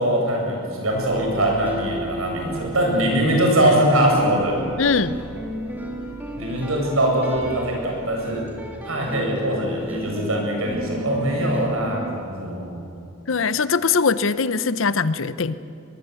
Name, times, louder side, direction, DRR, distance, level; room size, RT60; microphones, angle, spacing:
voice 1, 0.0-4.6 6.4-8.4 8.8-12.7, right 1 dB, 85° right, 0 dB, 7.6 m, -22 dB
sound 1, 0.9-12.2, equal, 10° right, 2.6 m, -34 dB
voice 2, 4.8-5.2 13.3-15.6, left 5 dB, 70° left, 14 dB, 0.8 m, -21 dB
22.5 x 21.5 x 8.2 m, 2.6 s
head